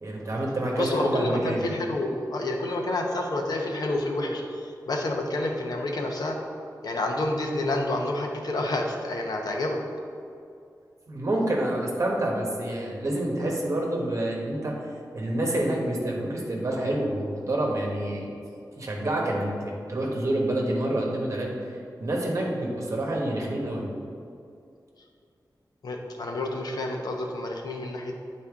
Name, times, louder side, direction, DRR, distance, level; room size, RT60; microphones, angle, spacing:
voice 1, 0.0-1.6 11.1-14.7 15.1-18.3 18.8-21.5 22.0-23.8, right 1 dB, 50° right, -1 dB, 1.2 m, -27 dB
voice 2, 0.8-6.4 6.8-9.8 25.8-28.2, left 2 dB, 70° left, 1 dB, 0.8 m, -29 dB
8.6 x 4.2 x 3.6 m, 2.4 s
wide cardioid pair, 130°, 7 cm